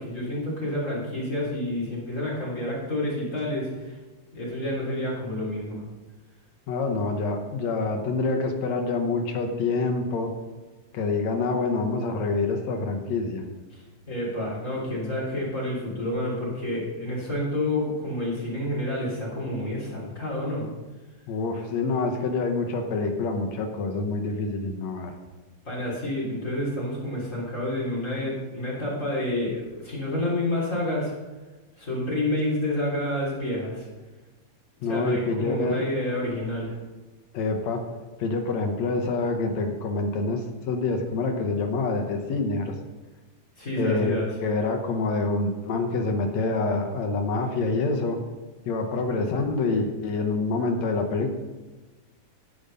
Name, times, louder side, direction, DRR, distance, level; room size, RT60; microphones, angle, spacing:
voice 1, 0.0-4.0 4.3-5.8 14.1-20.6 25.6-31.1 31.8-33.9 34.9-36.8 43.6-44.3, left 1 dB, 25° left, -6 dB, 3.5 m, -29 dB
voice 2, 6.7-10.3 10.9-13.5 21.3-25.1 34.8-35.8 37.3-37.8 38.2-42.8 43.8-48.2 48.7-51.3, left 3 dB, 70° left, 4 dB, 2.2 m, -26 dB
15.5 x 5.2 x 5.4 m, 1.2 s
omnidirectional pair, 3.4 m